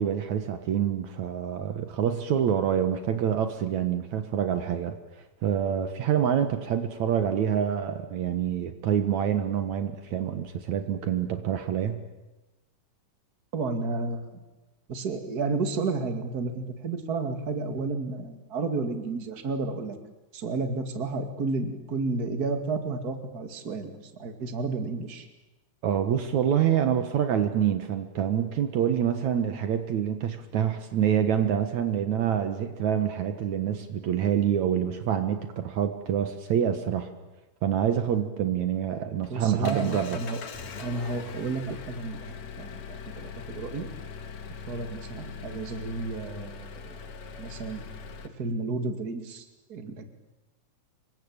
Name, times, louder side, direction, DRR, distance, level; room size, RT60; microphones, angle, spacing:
voice 1, 0.0-5.0 5.4-12.0 25.8-37.1 37.6-40.2, right 9 dB, 65° right, 9 dB, 2.6 m, -26 dB
voice 2, 13.5-14.4 14.9-20.0 20.3-25.3 39.3-40.4 40.8-43.9 44.7-47.0 47.4-47.8 48.4-50.0, right 3 dB, 30° right, 7 dB, 2.5 m, -32 dB
Engine, 38.8-48.3, left 5 dB, 60° left, 3.0 m, -41 dB
27.0 x 23.5 x 8.8 m, 1.1 s
omnidirectional pair, 3.6 m